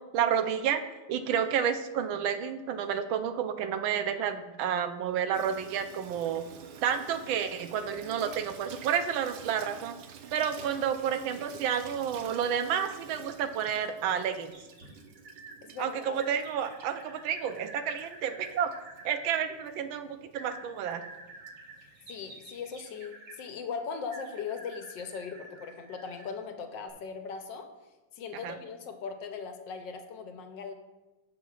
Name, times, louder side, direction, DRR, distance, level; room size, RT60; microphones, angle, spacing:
voice 1, 0.1-0.8 1.1-6.4 6.8-10.0 10.3-14.5 15.8-18.7 19.0-21.0 28.4-28.6, right 8 dB, 90° right, 8 dB, 1.4 m, -30 dB
Water tap faucet / Sink (filling or washing), 5.3-22.8, right 7 dB, 70° right, 1.1 m, -50 dB
sound 1, 14.5-15.6 16.2-19.2 20.3-23.4 24.1-26.4 26.8-26.9, right 2 dB, 40° right, 1.8 m, -49 dB
voice 2, 15.6-16.2 22.1-27.7 28.2-30.7, left 5 dB, 75° left, 6 dB, 1.4 m, -39 dB
14.5 x 6.2 x 2.4 m, 1.1 s
omnidirectional pair, 2.1 m